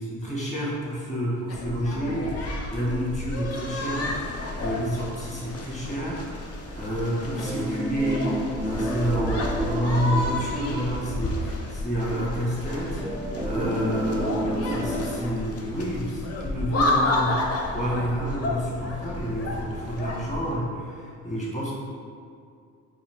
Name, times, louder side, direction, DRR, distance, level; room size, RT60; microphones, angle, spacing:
voice 1, 0.0-6.3 6.7-21.7, equal, 25° left, -6 dB, 1.4 m, -29 dB
sound 1, 1.5-20.6, left 2 dB, 55° left, 0.7 m, -31 dB
sound 2, 7.4-11.8 12.2-12.3 13.0-15.1, right 1 dB, 5° right, 0.4 m, -31 dB
4.7 x 2.6 x 3.6 m, 2.3 s
cardioid pair, 90°, 30 cm